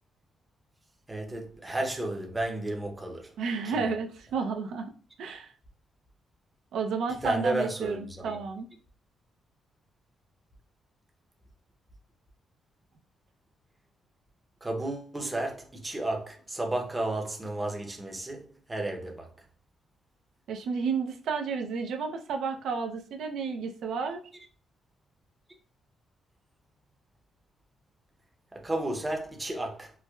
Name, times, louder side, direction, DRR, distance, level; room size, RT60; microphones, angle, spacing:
voice 1, 1.1-3.3 3.6-3.9 7.1-8.4 14.6-19.3 28.5-29.9, right 2 dB, 15° right, 0.6 m, -33 dB
voice 2, 3.4-4.9 5.2-5.5 6.7-8.7 20.5-24.2, right 5 dB, 80° right, 0.5 m, -31 dB
4.4 x 2.1 x 2.3 m
cardioid pair, 140°, 0 cm